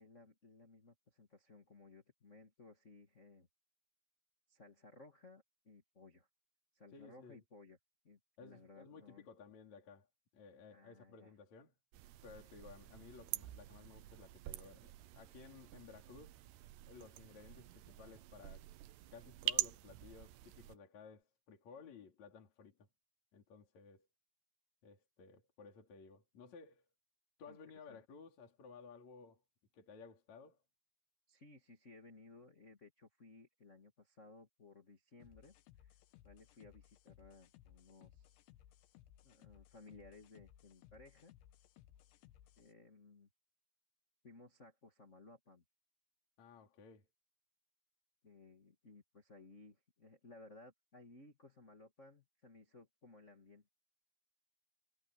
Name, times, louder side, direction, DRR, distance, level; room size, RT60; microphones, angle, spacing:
voice 1, 0.0-3.5 4.5-6.3 6.7-7.8 8.0-9.3 10.7-11.3 27.5-27.6 27.9-28.0 31.3-36.0 36.2-38.3 39.2-41.3 42.6-43.3 44.2-45.6 48.2-53.7, left 3 dB, 60° left, 0.7 m, -60 dB
voice 2, 6.9-7.4 8.4-11.7 12.2-16.4 16.9-18.7 19.1-22.9 23.3-24.1 24.8-26.8 27.4-29.4 29.7-30.6 46.4-47.1, left 5 dB, 40° left, 4.5 m, -57 dB
sound 1, 11.9-20.8, right 16 dB, 80° right, 2.9 m, -45 dB
sound 2, 35.2-42.7, left 12 dB, 90° left, 3.5 m, -63 dB
omnidirectional pair, 5.1 m